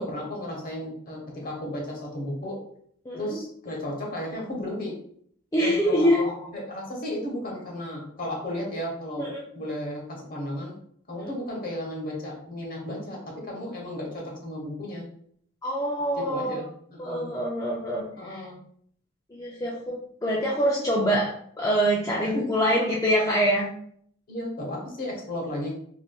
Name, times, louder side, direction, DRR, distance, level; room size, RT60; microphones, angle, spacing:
voice 1, 0.0-2.6 3.2-4.9 5.6-9.3 9.5-10.7 11.1-15.0 16.2-17.3 18.2-18.6 22.2-22.5 24.3-25.7, left 1 dB, 45° left, -1 dB, 0.9 m, -34 dB
voice 2, 5.5-6.3 9.2-9.4 11.2-11.3 15.6-16.7 17.0-18.5 19.3-23.7, equal, 15° left, -4 dB, 0.3 m, -25 dB
3.6 x 2.5 x 2.3 m, 0.64 s
head